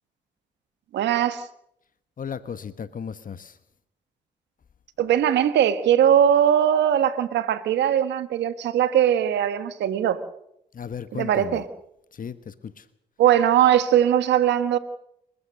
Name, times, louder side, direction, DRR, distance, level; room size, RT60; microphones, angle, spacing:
voice 1, 0.9-1.5 5.0-10.2 11.1-11.6 13.2-14.8, right 10 dB, 85° right, 12 dB, 1.6 m, -20 dB
voice 2, 2.2-3.6 10.7-11.6 12.1-12.9, left 7 dB, 50° left, 13 dB, 1.3 m, -35 dB
29.0 x 14.5 x 6.5 m, 0.77 s
cardioid pair, 65°, 18 cm